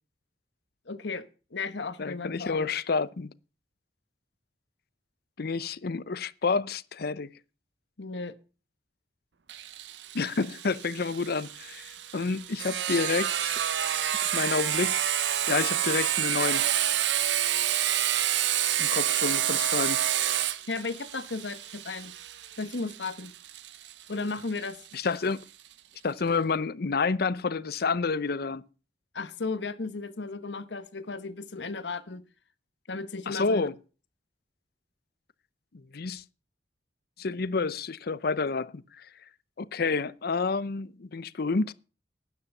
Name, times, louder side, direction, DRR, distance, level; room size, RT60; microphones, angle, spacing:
voice 1, 0.9-1.2 1.5-2.7 8.0-8.3 20.7-22.1 22.6-23.3 24.1-24.8 29.1-32.2 32.9-33.7, left 3 dB, 80° left, 1.1 m, -35 dB
voice 2, 2.0-3.3 5.4-7.3 10.1-13.5 14.3-15.0 15.5-16.6 18.8-20.0 24.9-25.4 26.0-28.6 33.3-33.7 35.9-36.2 37.2-39.1 39.6-41.7, left 4 dB, 60° left, 0.6 m, -29 dB
Sawing, 9.5-24.9, right 11 dB, 80° right, 0.7 m, -29 dB
12.5 x 9.5 x 5.4 m
head